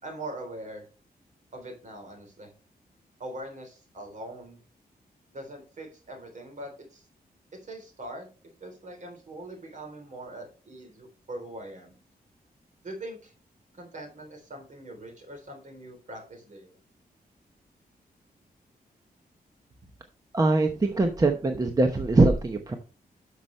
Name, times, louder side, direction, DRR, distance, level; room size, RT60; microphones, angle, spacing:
voice 1, 0.0-0.8 1.5-2.5 3.2-4.6 5.3-7.0 7.5-8.3 8.6-12.0 12.8-13.3 13.8-16.8, right 1 dB, 50° right, 4 dB, 3.5 m, -42 dB
voice 2, 20.3-22.8, right 2 dB, 25° right, 5 dB, 0.9 m, -22 dB
12.0 x 6.0 x 3.2 m, 0.33 s
wide cardioid pair, 165°, 16 cm